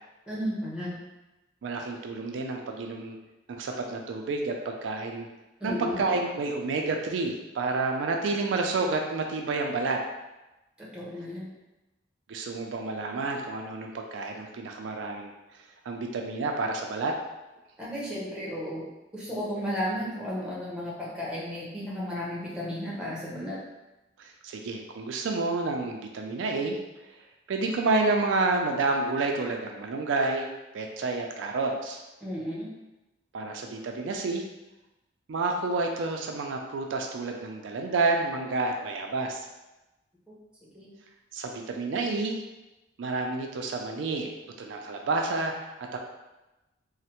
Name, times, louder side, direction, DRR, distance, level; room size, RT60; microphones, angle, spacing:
voice 1, 0.3-1.0 5.6-6.0 10.8-11.5 17.8-18.9 19.1-23.6 32.2-32.7 40.3-40.4 40.7-40.9, equal, 5° right, -7 dB, 0.8 m, -34 dB
voice 2, 1.6-3.2 3.5-5.3 5.6-10.0 12.3-15.3 15.8-17.1 24.2-26.8 27.5-30.5 30.7-32.0 33.3-34.5 35.3-39.5 41.3-42.4 43.0-44.3 44.6-46.0, right 3 dB, 85° right, 2 dB, 0.4 m, -29 dB
3.1 x 2.1 x 2.9 m, 1.0 s
head